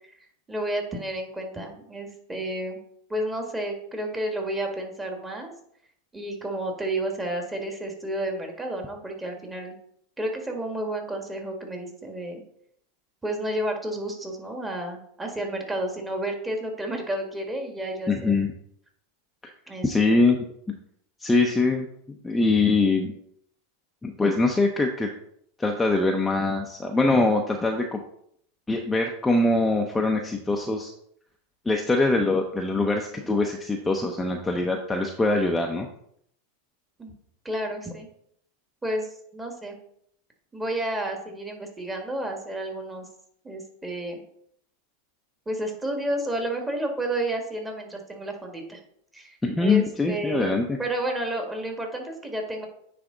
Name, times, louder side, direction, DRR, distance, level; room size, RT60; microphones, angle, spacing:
voice 1, 0.5-2.8 3.1-5.5 6.1-9.8 10.2-12.4 13.2-18.3 19.7-20.2 37.0-37.1 37.4-38.1 38.8-39.8 40.5-43.1 43.4-44.2 45.5-48.8 49.1-52.7, right 1 dB, 10° right, 2 dB, 1.8 m, -31 dB
voice 2, 18.1-18.5 19.8-20.8 21.2-21.9 22.2-23.1 24.0-25.1 25.6-28.0 28.7-30.9 31.7-35.9 49.4-50.8, left 3 dB, 10° left, 1 dB, 0.8 m, -23 dB
9.6 x 3.5 x 3.9 m, 0.69 s
hypercardioid pair, 105°, 0 cm